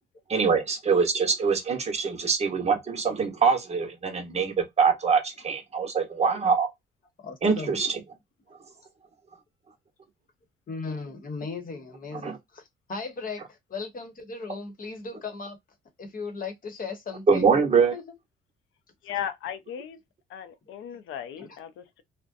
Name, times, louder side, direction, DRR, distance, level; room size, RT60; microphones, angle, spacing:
voice 1, 0.3-6.7 7.4-8.0 12.2-12.4 17.3-17.9, right 5 dB, 35° right, 0.9 m, -24 dB
voice 2, 7.2-7.8 10.7-15.6 16.0-17.6 17.9-18.0 20.9-21.0 21.4-21.6, left 4 dB, 45° left, 1.0 m, -37 dB
voice 3, 19.0-20.0 20.3-22.0, left 10 dB, 85° left, 0.5 m, -36 dB
2.6 x 2.1 x 2.4 m
cardioid pair, 90°, 20 cm